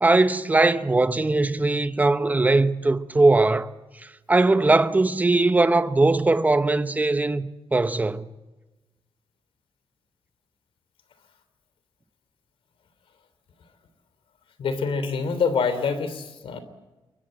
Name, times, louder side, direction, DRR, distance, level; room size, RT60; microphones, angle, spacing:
voice 1, 0.0-3.7 4.3-8.3, right 2 dB, 15° right, 0.9 m, -20 dB
voice 2, 14.6-16.6, left 5 dB, 80° left, 3.2 m, -25 dB
27.5 x 23.0 x 7.7 m
wide cardioid pair, 135°, 9 cm